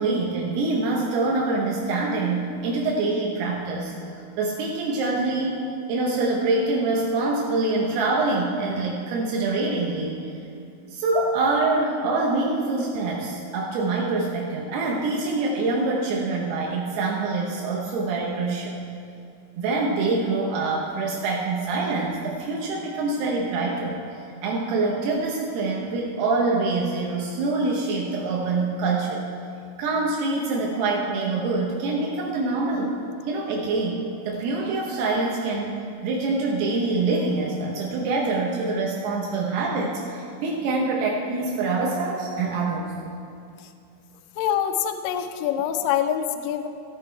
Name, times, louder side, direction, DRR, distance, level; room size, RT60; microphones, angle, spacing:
voice 1, 0.0-3.9 4.4-10.2 10.9-18.8 19.6-24.0 24.4-29.2 29.8-33.0 33.3-42.9 45.5-45.7, right 3 dB, 85° right, -2 dB, 3.0 m, -25 dB
voice 2, 44.4-46.7, left 9 dB, 80° left, 7 dB, 2.1 m, -25 dB
14.5 x 8.2 x 4.5 m, 2.5 s
omnidirectional pair, 4.5 m